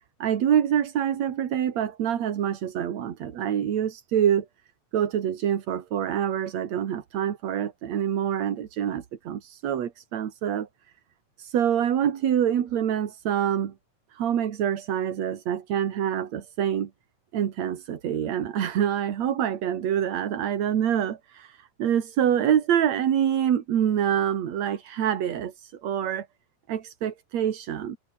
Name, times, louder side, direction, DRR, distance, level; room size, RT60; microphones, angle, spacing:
voice 1, 0.2-4.5 4.9-10.7 11.4-13.7 14.1-16.9 17.3-26.3 26.7-28.0, right 9 dB, 55° right, 2.8 m, -26 dB
omnidirectional pair, 3.9 m